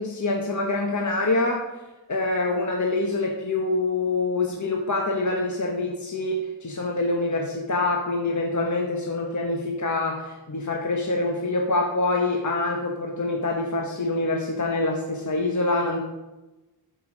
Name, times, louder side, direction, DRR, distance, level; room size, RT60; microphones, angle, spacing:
voice 1, 0.0-1.6 2.1-16.0, left 2 dB, 40° left, 0 dB, 1.2 m, -25 dB
11.5 x 5.5 x 6.2 m, 1.0 s
wide cardioid pair, 100°, 45 cm